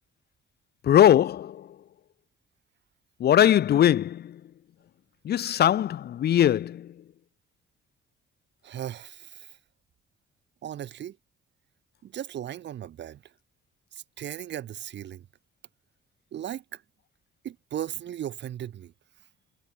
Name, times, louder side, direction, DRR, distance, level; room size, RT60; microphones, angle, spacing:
voice 1, 0.8-1.7 3.2-4.4 5.2-6.9, left 11 dB, 55° left, 0.6 m, -21 dB
voice 2, 8.6-9.5 10.6-11.2 12.0-13.2 14.2-15.3 16.3-16.8 17.4-18.9, right 11 dB, 65° right, 1.4 m, -36 dB
cardioid pair, 90°, 20 cm